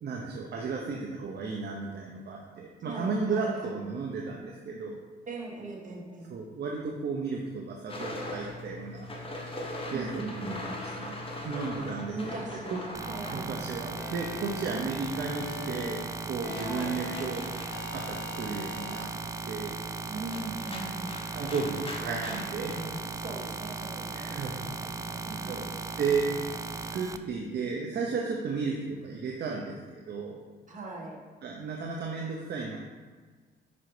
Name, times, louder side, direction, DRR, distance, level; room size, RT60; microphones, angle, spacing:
voice 1, 0.0-5.0 6.3-9.1 9.9-11.2 11.4-12.4 12.7-12.8 13.3-17.4 17.7-19.1 19.4-19.8 21.3-22.7 23.0-23.1 24.1-24.5 25.5-25.7 26.0-26.6 26.9-30.4 31.4-32.8, right 4 dB, 55° right, -1 dB, 0.9 m, -34 dB
voice 2, 2.8-3.8 5.3-6.4 9.9-10.6 12.1-13.6 14.7-15.2 16.6-17.0 20.1-21.1 23.1-25.9 30.7-31.2, right 2 dB, 40° right, -2 dB, 1.7 m, -40 dB
sound 1, 7.9-14.6 14.9-26.5, left 1 dB, 25° left, 1.3 m, -42 dB
sound 2, 12.9-27.2, right 3 dB, 15° right, 0.4 m, -37 dB
sound 3, 14.0-14.7 15.1-16.0 16.4-17.3 17.7-19.0, left 5 dB, 65° left, 0.7 m, -43 dB
5.6 x 5.2 x 4.9 m, 1.4 s
cardioid pair, 90°, 20 cm